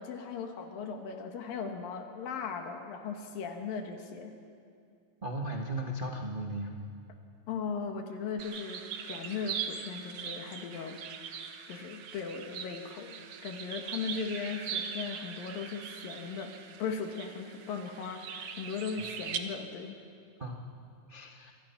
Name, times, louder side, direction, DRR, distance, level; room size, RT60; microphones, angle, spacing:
voice 1, 0.0-4.3 7.5-11.0 11.7-16.5 16.8-19.9, left 5 dB, 80° left, 4 dB, 3.2 m, -38 dB
voice 2, 5.2-6.7 11.7-11.8 18.9-19.0 20.4-20.5 21.1-21.5, right 1 dB, 85° right, 0 dB, 0.4 m, -36 dB
sound 1, 8.4-19.4, right 7 dB, 60° right, 1.7 m, -41 dB
26.5 x 24.5 x 5.9 m, 2.3 s
omnidirectional pair, 4.0 m